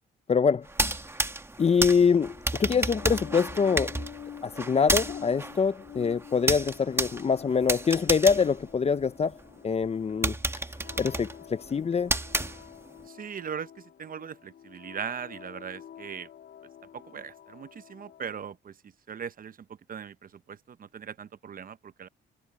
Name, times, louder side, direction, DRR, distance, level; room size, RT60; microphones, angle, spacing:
voice 1, 0.3-0.6 1.6-3.9 4.6-9.3 9.6-10.3 11.0-12.1, left 5 dB, 30° left, 0.7 m, -24 dB
sound 1, 0.7-9.4 9.8-9.9 10.2-13.0, right 2 dB, 10° right, 1.3 m, -31 dB
sound 2, 2.5-18.4, left 9 dB, 65° left, 2.7 m, -48 dB
voice 2, 13.1-16.3 16.9-22.1, right 7 dB, 45° right, 0.8 m, -40 dB
cardioid pair, 90°, 20 cm